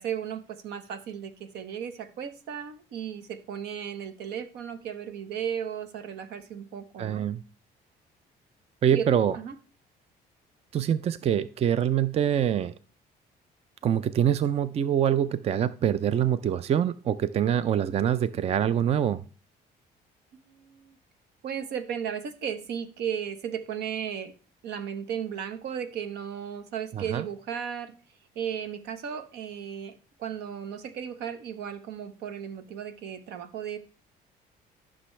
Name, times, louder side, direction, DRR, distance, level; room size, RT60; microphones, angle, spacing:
voice 1, 0.0-7.2 8.9-9.1 9.3-9.5 20.3-21.0 21.4-24.3 24.6-27.9 28.3-33.8, right 8 dB, 80° right, 10 dB, 1.1 m, -35 dB
voice 2, 7.0-7.4 8.8-9.4 10.7-12.7 13.8-19.2 26.9-27.3, right 9 dB, 40° right, 15 dB, 0.4 m, -25 dB
13.0 x 6.1 x 3.2 m, 0.37 s
cardioid pair, 110°, 17 cm